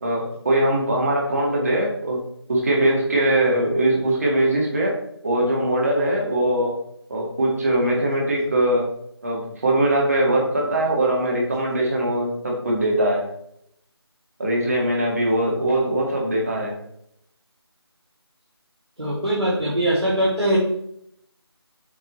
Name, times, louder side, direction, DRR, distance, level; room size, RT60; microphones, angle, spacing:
voice 1, 0.0-2.2 2.5-5.0 5.2-6.8 7.1-8.9 9.2-13.2 14.4-16.8, right 1 dB, 35° right, -2 dB, 1.9 m, -21 dB
voice 2, 19.0-20.6, right 1 dB, 75° right, -6 dB, 2.1 m, -21 dB
7.8 x 5.3 x 3.1 m, 0.74 s
figure-of-eight pair, 165°, 14 cm